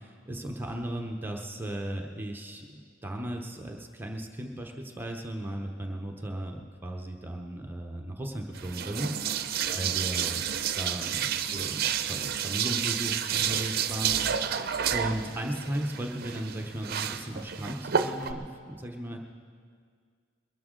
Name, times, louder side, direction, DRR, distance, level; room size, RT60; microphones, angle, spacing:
voice 1, 0.0-9.1 9.7-10.4 10.7-14.4 14.9-19.2, right 1 dB, 10° right, 1 dB, 0.8 m, -36 dB
sound 1, 8.5-18.3, right 8 dB, 55° right, 0.6 m, -30 dB
22.0 x 12.5 x 3.8 m, 2.1 s
head